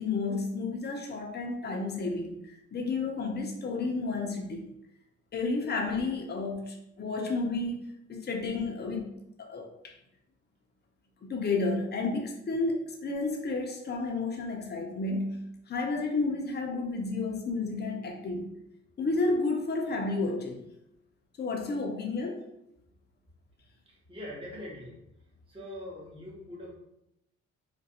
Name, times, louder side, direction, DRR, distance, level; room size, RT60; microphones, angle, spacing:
voice 1, 0.0-4.7 5.3-9.1 9.4-9.9 11.2-18.6 19.0-20.7 21.4-22.5, left 3 dB, 35° left, 2 dB, 0.6 m, -31 dB
voice 2, 23.9-25.0 25.5-26.7, left 1 dB, 20° right, -4 dB, 0.9 m, -43 dB
2.4 x 2.2 x 2.7 m, 0.80 s
cardioid pair, 90°, 30 cm